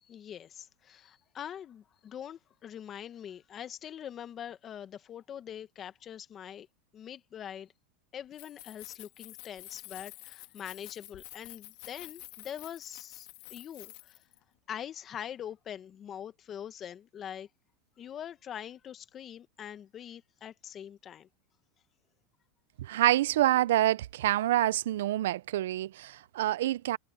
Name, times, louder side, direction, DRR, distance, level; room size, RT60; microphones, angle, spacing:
voice 1, 0.1-6.7 6.9-7.7 8.1-14.2 14.7-17.5 18.0-21.3, left 9 dB, 35° left, 1.4 m, -43 dB
Keys jangling, 8.2-14.4, left 23 dB, 65° left, 1.7 m, -49 dB
voice 2, 22.8-27.0, right 14 dB, 80° right, 0.4 m, -27 dB
supercardioid pair, 120°, 0 cm